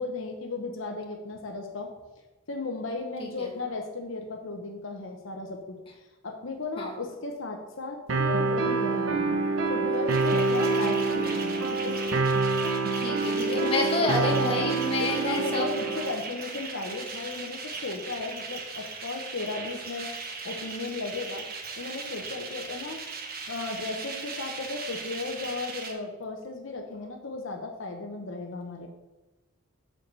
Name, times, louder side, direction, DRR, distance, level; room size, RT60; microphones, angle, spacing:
voice 1, 0.0-1.9 2.5-5.8 6.2-9.4 9.7-12.0 13.3-20.1 20.4-21.5 21.8-23.0 23.5-28.9, left 3 dB, 65° left, 3 dB, 0.9 m, -35 dB
sound 1, 8.1-16.1, right 3 dB, 75° right, 0.9 m, -26 dB
sound 2, 9.9-25.9, right 4 dB, 45° right, 1.2 m, -38 dB
voice 2, 13.0-15.7, left 2 dB, 25° left, 0 dB, 1.5 m, -29 dB
7.6 x 4.7 x 6.8 m, 1.1 s
head